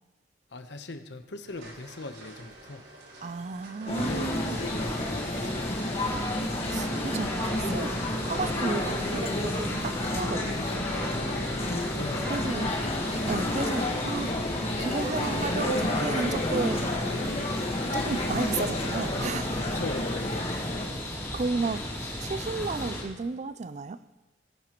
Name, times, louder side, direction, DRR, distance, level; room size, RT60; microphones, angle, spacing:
voice 1, 0.5-2.9 4.0-5.6 11.0-12.4 19.7-20.5, left 2 dB, 70° left, 0.9 m, -40 dB
sound 1, 1.5-18.7, right 1 dB, 75° right, 4.6 m, -49 dB
voice 2, 3.2-4.6 6.7-8.0 8.2-10.8 12.3-12.7 13.2-14.3 14.8-16.9 17.6-19.7 21.3-21.8 22.2-24.0, right 4 dB, 40° right, 0.4 m, -33 dB
sound 2, 3.9-20.9, left 1 dB, 30° left, 1.5 m, -31 dB
sound 3, 3.9-23.0, left 1 dB, 15° left, 3.0 m, -35 dB
19.0 x 11.0 x 3.0 m
head